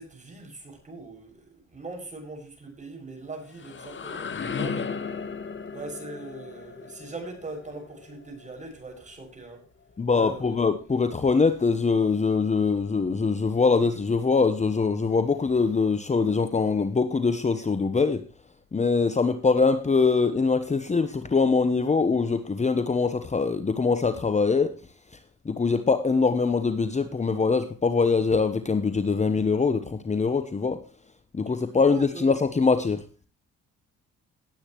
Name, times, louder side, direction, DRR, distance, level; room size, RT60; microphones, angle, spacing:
voice 1, 0.0-4.9 5.7-9.6 10.1-10.5 31.9-32.2, right 3 dB, 25° right, 6.5 m, -41 dB
sound 1, 3.2-9.0, left 5 dB, 40° left, 1.5 m, -36 dB
voice 2, 10.0-18.2 18.7-24.7 25.4-30.8 31.3-33.0, left 4 dB, 25° left, 1.0 m, -23 dB
18.0 x 8.8 x 3.1 m
cardioid pair, 90°, 30 cm